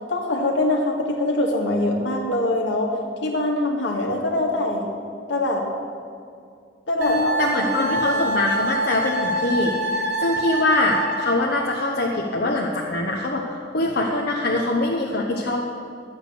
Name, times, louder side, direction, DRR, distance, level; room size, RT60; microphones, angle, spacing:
voice 1, 0.1-4.9 5.3-5.7 6.9-8.2, left 1 dB, 70° left, 0 dB, 1.9 m, -24 dB
voice 2, 7.0-15.6, left 2 dB, 55° left, -2 dB, 1.0 m, -23 dB
Wind instrument woodwind instrument, 7.0-11.5, right 1 dB, 60° right, 1.4 m, -26 dB
12.5 x 8.8 x 6.8 m, 2.3 s
head